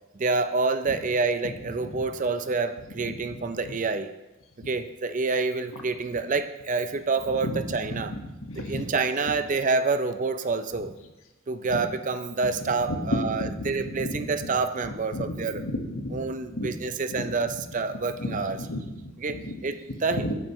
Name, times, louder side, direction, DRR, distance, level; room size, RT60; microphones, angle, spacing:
voice 1, 0.1-4.1 4.7-8.1 8.6-10.9 11.5-15.6 16.1-18.6 19.2-20.2, right 4 dB, 35° right, 10 dB, 0.5 m, -27 dB
voice 2, 8.5-8.8 13.0-14.5 15.1-16.2 16.5-16.7 18.2-19.5 20.2-20.3, left 1 dB, 80° left, 3 dB, 1.4 m, -32 dB
13.0 x 9.3 x 3.1 m, 1.0 s
head